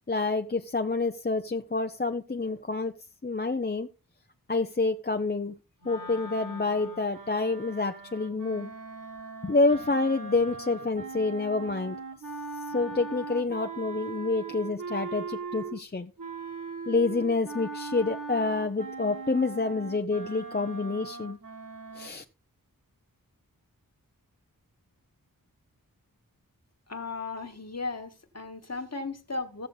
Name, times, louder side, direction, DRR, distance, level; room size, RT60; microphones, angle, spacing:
voice 1, 0.1-3.0 3.2-3.9 4.5-5.6 5.8-8.7 9.4-12.0 12.7-16.1 16.9-21.4 21.9-22.2, left 3 dB, 30° left, 0.7 m, -28 dB
sound 1, 5.8-15.8 16.2-22.1, right 4 dB, 65° right, 2.3 m, -40 dB
voice 2, 26.9-29.7, left 3 dB, 45° left, 1.7 m, -36 dB
15.5 x 6.9 x 4.0 m
wide cardioid pair, 65°, 35 cm